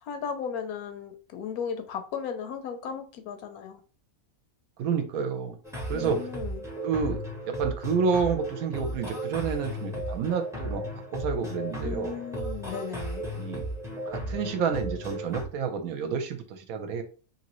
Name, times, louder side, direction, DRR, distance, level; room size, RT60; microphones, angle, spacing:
voice 1, 0.0-3.8 5.9-6.7 11.8-13.2, left 7 dB, 80° left, 1.0 m, -36 dB
voice 2, 4.8-5.6 5.9-6.3 6.8-10.8 11.1-12.2 13.3-13.6 14.1-17.0, right 6 dB, 75° right, 1.0 m, -29 dB
sound 1, 5.6-15.5, right 1 dB, 5° right, 0.4 m, -35 dB
2.9 x 2.7 x 2.9 m
omnidirectional pair, 1.6 m